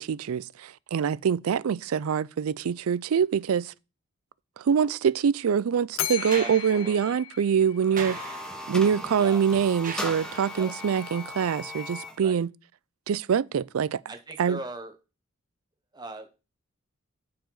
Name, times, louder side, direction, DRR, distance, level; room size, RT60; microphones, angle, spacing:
voice 1, 0.0-3.7 4.6-8.2 8.7-12.5 13.1-14.0 14.4-14.6, right 7 dB, 90° right, 0.4 m, -25 dB
Bell, 5.9-8.2, left 12 dB, 65° left, 0.5 m, -35 dB
sound 1, 6.1-10.8 12.3-12.4, right 5 dB, 40° right, 1.4 m, -41 dB
voice 2, 6.3-7.2 9.2-9.4 10.5-10.7 12.2-12.4 14.1-15.0 15.9-16.4, right 2 dB, 20° right, 1.0 m, -40 dB
sound 2, 7.8-12.2, left 1 dB, 5° left, 1.2 m, -38 dB
13.0 x 4.9 x 3.9 m
head